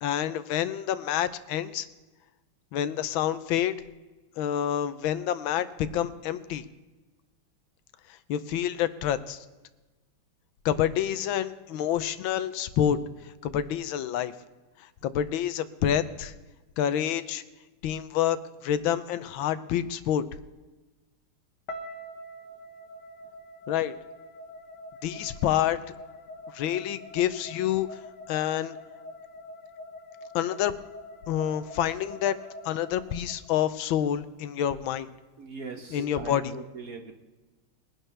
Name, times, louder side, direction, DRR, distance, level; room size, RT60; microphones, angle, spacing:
voice 1, 0.0-1.9 2.7-3.7 4.4-6.6 8.3-9.4 10.6-13.0 13.4-14.3 15.0-16.3 16.8-17.4 17.8-18.4 18.6-20.2 23.7-23.9 25.0-25.8 26.5-27.9 28.3-28.8 30.3-30.7 31.3-32.4 32.6-35.1 35.9-36.5, left 10 dB, 75° left, 13 dB, 1.4 m, -27 dB
sound 1, 21.7-33.8, left 1 dB, 55° left, 1.7 m, -45 dB
voice 2, 35.4-37.1, right 4 dB, 50° right, 5 dB, 1.2 m, -40 dB
21.5 x 11.0 x 3.4 m, 1.2 s
omnidirectional pair, 2.3 m